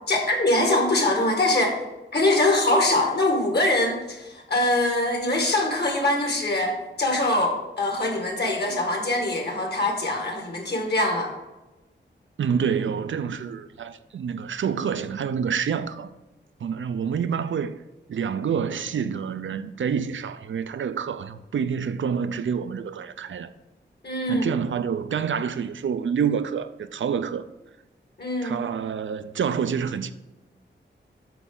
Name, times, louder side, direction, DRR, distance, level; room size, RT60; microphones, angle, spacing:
voice 1, 0.1-1.8 2.1-11.3 24.0-24.5 28.2-28.6, left 1 dB, 60° left, 2.0 m, -23 dB
voice 2, 12.4-16.1 16.6-17.8 18.1-23.5 24.3-27.4 28.4-30.1, right 7 dB, 90° right, 0.5 m, -27 dB
8.1 x 6.0 x 3.8 m
wide cardioid pair, 115°, 19 cm